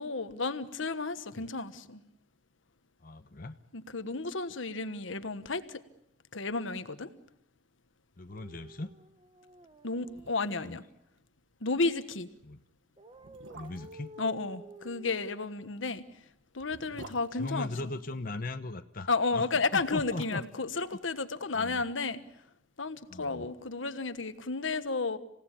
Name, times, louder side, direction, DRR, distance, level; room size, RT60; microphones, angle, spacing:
voice 1, 0.0-2.0 3.7-5.8 6.3-7.1 9.8-10.8 11.6-12.3 14.2-16.0 16.5-17.7 19.1-22.2 22.8-25.2, left 3 dB, 85° left, 1.4 m, -32 dB
voice 2, 3.0-3.6 8.2-8.9 10.6-10.8 12.4-12.6 13.5-14.1 16.9-20.4 21.5-21.8 23.1-23.5, left 2 dB, 45° left, 1.0 m, -39 dB
sound 1, 8.3-10.6 13.0-15.4, equal, 25° right, 1.0 m, -51 dB
sound 2, 9.7-9.8 10.1-10.7 11.0-11.1 11.5-11.7 12.4-12.5 13.1-14.1 15.6-18.3 19.5-21.8 22.0-22.1, right 3 dB, 80° right, 1.5 m, -51 dB
27.5 x 17.0 x 10.0 m
head